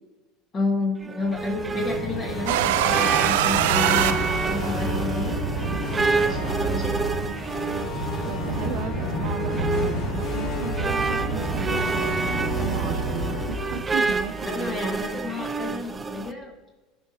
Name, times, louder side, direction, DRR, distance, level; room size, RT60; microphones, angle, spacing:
voice 1, 0.5-5.4 6.0-7.0 14.5-16.5, left 3 dB, 35° left, -1 dB, 1.6 m, -31 dB
sound 1, 1.0-16.3, right 4 dB, 20° right, 0.4 m, -29 dB
sound 2, 1.3-15.3, equal, 60° left, 2.2 m, -29 dB
sound 3, 2.5-5.0, right 13 dB, 80° right, 0.4 m, -23 dB
voice 2, 6.7-7.5 8.3-15.4, right 6 dB, 60° right, 7 dB, 0.7 m, -36 dB
15.0 x 5.1 x 2.8 m, 1.2 s
supercardioid pair, 100°, 0 cm